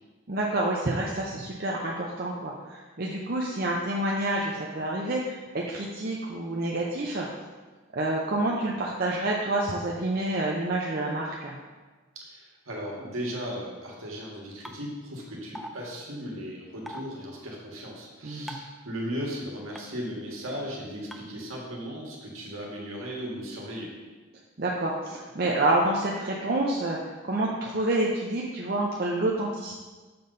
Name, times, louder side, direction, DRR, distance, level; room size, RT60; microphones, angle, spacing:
voice 1, 0.3-7.3 7.9-11.5 18.2-18.5 24.6-27.0 27.2-29.7, right 2 dB, 45° right, -3 dB, 0.6 m, -28 dB
voice 2, 12.1-23.9, equal, 85° right, -2 dB, 1.7 m, -36 dB
sound 1, 14.6-14.7 15.5-15.7 16.9-17.0 18.5-18.7 19.7-19.8 21.1-21.2, equal, ahead, 0.3 m, -38 dB
6.9 x 4.0 x 5.4 m, 1.3 s
head